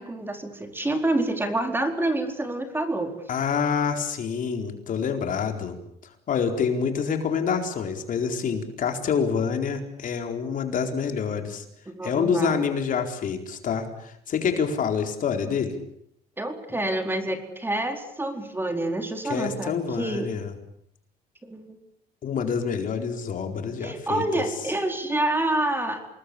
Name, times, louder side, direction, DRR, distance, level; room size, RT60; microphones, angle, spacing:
voice 1, 0.0-3.1 11.9-12.7 16.4-20.3 21.4-21.8 23.8-26.1, right 1 dB, 15° right, 5 dB, 4.4 m, -27 dB
voice 2, 3.3-5.8 6.3-11.6 12.0-15.8 19.3-20.5 22.2-24.2, left 6 dB, 50° left, 5 dB, 4.4 m, -27 dB
28.0 x 20.5 x 8.7 m, 0.74 s
cardioid pair, 110°, 17 cm